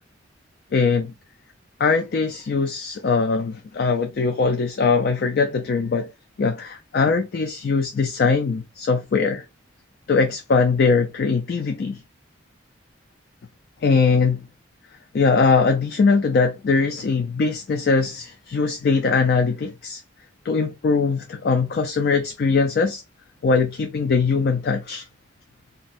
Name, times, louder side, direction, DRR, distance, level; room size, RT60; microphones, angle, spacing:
voice 1, 0.7-1.1 1.8-6.1 6.4-9.4 10.1-12.0 13.8-14.4 15.1-20.0 20.5-23.0 23.4-25.0, left 4 dB, 55° left, 0.4 m, -21 dB
2.7 x 2.0 x 4.0 m
head